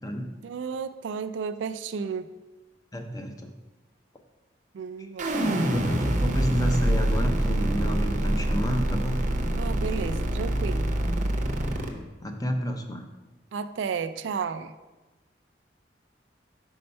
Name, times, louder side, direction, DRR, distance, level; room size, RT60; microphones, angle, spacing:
voice 1, 0.4-2.3 4.7-5.7 9.6-10.9 13.5-14.7, right 6 dB, 75° right, 11 dB, 0.3 m, -33 dB
voice 2, 2.9-3.5 5.6-9.2 12.2-13.0, equal, 20° left, 4 dB, 0.6 m, -30 dB
sound 1, 5.2-11.9, right 1 dB, 40° right, 0.7 m, -25 dB
5.5 x 4.3 x 5.3 m, 1.2 s
head